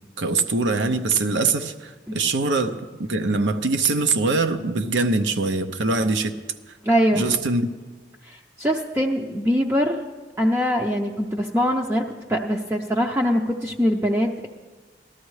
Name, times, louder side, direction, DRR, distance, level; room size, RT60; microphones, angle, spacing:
voice 1, 0.2-6.3 7.1-7.7, right 3 dB, 85° right, 8 dB, 0.7 m, -23 dB
voice 2, 6.8-7.3 8.2-10.0 10.4-14.5, equal, 15° right, 0 dB, 0.5 m, -23 dB
18.0 x 12.5 x 3.2 m, 1.4 s
head